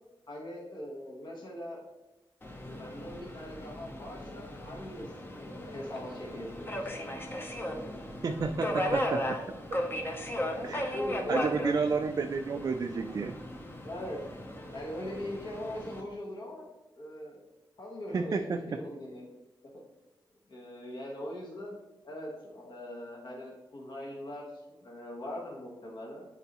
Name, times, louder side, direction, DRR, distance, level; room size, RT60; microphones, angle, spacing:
voice 1, 0.3-1.8 2.7-7.1 10.9-11.4 13.8-14.2 14.7-16.7 17.0-17.4 17.8-19.2 20.5-21.8 22.0-24.4 24.7-26.3, left 1 dB, 55° left, -2 dB, 1.3 m, -41 dB
Subway metro underground, 2.4-16.0, equal, 25° left, 0.8 m, -37 dB
voice 2, 8.2-9.4 10.6-11.0 11.3-13.4 18.1-18.8, right 4 dB, 40° right, 5 dB, 0.3 m, -31 dB
7.9 x 4.0 x 3.0 m, 1.0 s
wide cardioid pair, 100°, 9 cm